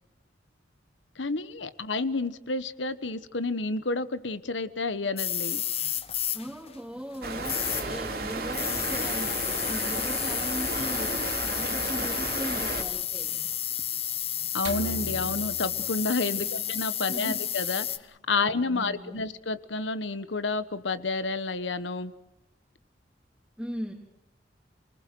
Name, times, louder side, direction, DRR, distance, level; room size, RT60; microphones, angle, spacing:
voice 1, 1.2-5.6 14.5-17.9 18.3-22.1, left 3 dB, 90° left, 12 dB, 1.3 m, -30 dB
sound 1, 5.2-18.0, left 10 dB, 35° left, 1.1 m, -31 dB
voice 2, 6.3-11.2 11.4-13.3 16.3-16.6 17.0-17.4 18.4-19.3 23.6-23.9, equal, 5° right, -5 dB, 3.5 m, -38 dB
sound 2, 7.2-12.8, right 3 dB, 55° right, 3.0 m, -33 dB
sound 3, 14.6-16.9, right 2 dB, 70° right, 1.7 m, -39 dB
28.5 x 20.0 x 6.3 m, 0.89 s
head